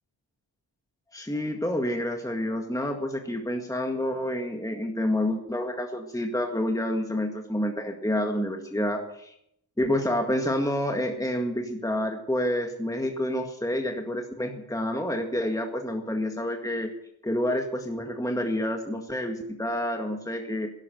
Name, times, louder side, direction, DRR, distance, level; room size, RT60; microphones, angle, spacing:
voice 1, 1.1-9.3 9.8-16.9 17.2-20.7, left 1 dB, 5° left, 3 dB, 1.9 m, -28 dB
12.5 x 11.5 x 7.9 m, 0.75 s
cardioid pair, 50°, 47 cm